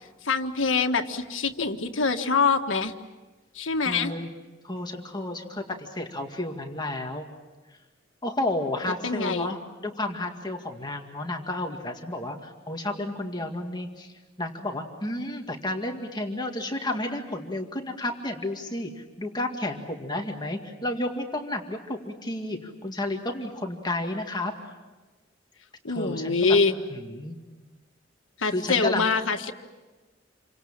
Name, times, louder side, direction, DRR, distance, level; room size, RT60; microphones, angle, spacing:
voice 1, 0.2-2.9 3.5-4.1 9.0-9.5 25.8-26.7 28.4-29.5, left 4 dB, 90° left, 6 dB, 1.7 m, -24 dB
voice 2, 3.8-4.3 4.6-7.3 8.2-14.1 14.4-24.5 25.9-26.6 26.9-27.4 28.5-29.1, left 1 dB, 20° left, 3 dB, 2.1 m, -31 dB
29.0 x 25.0 x 7.4 m, 1.2 s
head